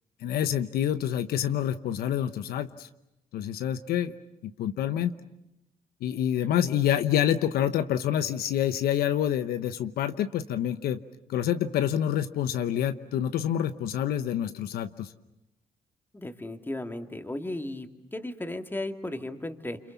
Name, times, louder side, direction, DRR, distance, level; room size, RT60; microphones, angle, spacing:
voice 1, 0.2-2.9 3.3-4.1 4.4-5.1 6.0-11.0 11.3-15.1, left 10 dB, 80° left, 11 dB, 1.0 m, -27 dB
voice 2, 16.1-19.8, left 1 dB, 15° left, 6 dB, 2.3 m, -35 dB
28.5 x 26.0 x 7.2 m, 0.90 s
cardioid pair, 80°, 15 cm